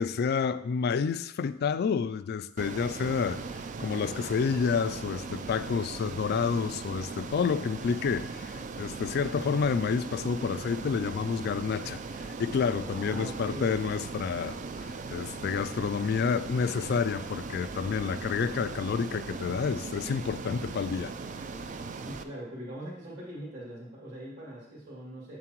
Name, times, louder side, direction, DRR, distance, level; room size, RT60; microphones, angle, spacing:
voice 1, 0.0-3.4 3.8-12.0 12.4-21.1, left 6 dB, 50° left, 0.3 m, -29 dB
Ocean, 2.6-22.2, right 4 dB, 40° right, 0.4 m, -39 dB
voice 2, 12.9-13.7 21.9-25.4, right 1 dB, 60° right, 2.4 m, -41 dB
7.5 x 7.4 x 3.0 m
head